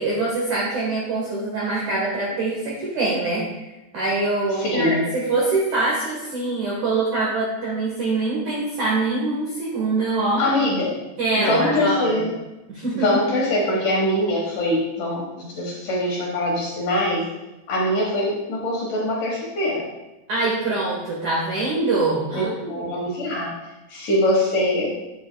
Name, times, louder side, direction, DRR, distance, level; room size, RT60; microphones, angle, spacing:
voice 1, 0.0-3.4 3.9-10.4 11.2-12.2 12.7-13.1 20.3-22.8, right 2 dB, 80° right, -5 dB, 1.7 m, -24 dB
voice 2, 4.5-5.0 10.4-11.0 11.4-12.3 12.9-17.2 17.7-19.8 22.3-23.5 23.9-24.9, left 1 dB, 70° left, -4 dB, 2.0 m, -23 dB
10.5 x 7.8 x 2.2 m, 1.0 s
omnidirectional pair, 5.5 m